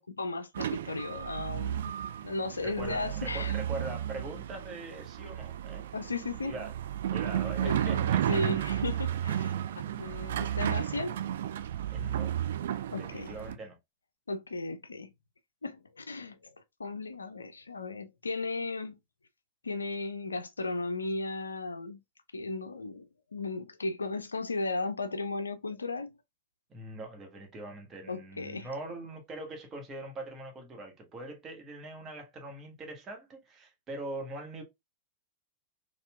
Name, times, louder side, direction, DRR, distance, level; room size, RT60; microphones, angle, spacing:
voice 1, 0.0-1.9 2.2-3.6 5.9-6.5 7.6-11.2 12.9-13.4 14.3-15.1 15.6-16.5 16.8-19.0 19.6-22.0 22.3-23.0 23.3-26.1 28.1-28.7, left 3 dB, 75° left, 0.4 m, -35 dB
sound 1, 0.5-13.6, right 11 dB, 60° right, 0.3 m, -33 dB
voice 2, 2.6-5.9 6.4-6.7 7.1-8.4 11.9-12.3 13.0-13.8 26.7-34.6, right 2 dB, 25° right, 1.2 m, -42 dB
4.2 x 2.4 x 2.3 m
figure-of-eight pair, 90°, 0 cm